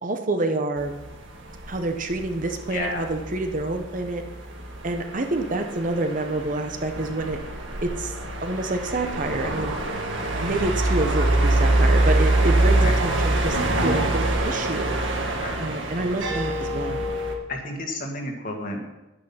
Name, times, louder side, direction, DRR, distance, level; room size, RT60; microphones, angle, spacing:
voice 1, 0.0-0.9 1.7-4.2 4.8-7.4 7.8-8.1 8.4-9.7 10.4-15.0 15.6-17.0, right 2 dB, 40° right, 5 dB, 1.0 m, -27 dB
sound 1, 0.8-17.3, right 1 dB, 65° right, 1.8 m, -25 dB
voice 2, 2.7-3.1 10.2-10.3 12.8-12.9 15.4-15.6 17.5-18.8, left 2 dB, 45° left, 1 dB, 2.0 m, -31 dB
10.5 x 10.0 x 5.8 m, 1.0 s
head